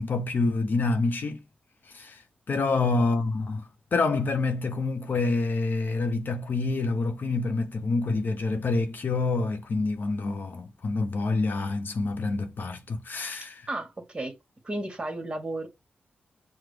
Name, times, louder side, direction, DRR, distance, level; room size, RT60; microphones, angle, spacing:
voice 1, 0.0-1.4 1.8-2.2 2.5-13.7, left 3 dB, 55° left, 0.8 m, -27 dB
voice 2, 13.7-14.3 14.6-15.7, right 2 dB, 25° right, 1.4 m, -33 dB
5.9 x 2.1 x 3.2 m
wide cardioid pair, 100°, 4 cm